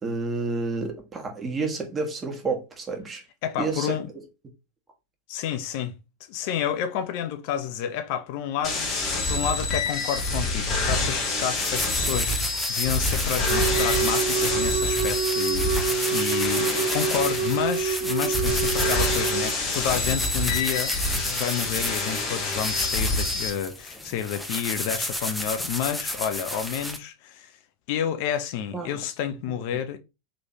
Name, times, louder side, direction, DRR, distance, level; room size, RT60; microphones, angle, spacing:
voice 1, 0.0-3.2 3.6-4.2 15.6-15.7 28.7-29.0, right 3 dB, 20° right, 1.3 m, -30 dB
voice 2, 3.4-4.1 5.3-5.9 6.3-27.6 27.9-30.0, left 9 dB, 50° left, 0.4 m, -30 dB
sound 1, 8.6-23.5, left 2 dB, 35° left, 1.4 m, -27 dB
sound 2, 11.5-27.0, left 1 dB, 5° left, 0.7 m, -32 dB
Wind instrument woodwind instrument, 13.5-19.5, right 6 dB, 60° right, 0.4 m, -27 dB
4.1 x 3.1 x 2.9 m
figure-of-eight pair, 90°, 0 cm